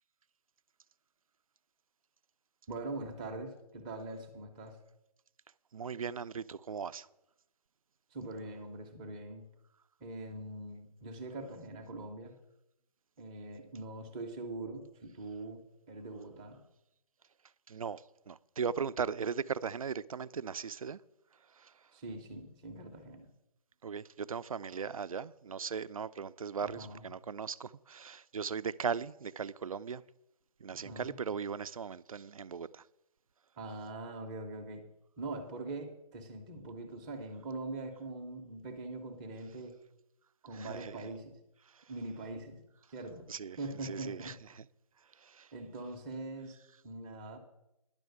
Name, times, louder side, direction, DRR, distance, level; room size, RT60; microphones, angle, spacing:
voice 1, 2.7-4.8 8.1-9.5 10.0-12.4 13.2-15.6 15.9-16.6 21.9-23.3 26.6-27.0 30.7-31.2 33.6-34.8 35.2-39.7 40.4-41.4 41.9-42.6 42.9-43.2 43.6-44.3 45.5-46.6 46.8-47.4, right 2 dB, 10° right, 0.6 m, -42 dB
voice 2, 5.7-7.1 17.7-18.0 18.3-21.0 23.8-30.0 30.6-32.7 40.6-40.9 43.3-43.6 43.9-44.3, right 6 dB, 60° right, 0.5 m, -38 dB
10.5 x 6.3 x 8.1 m
figure-of-eight pair, 155°, 20 cm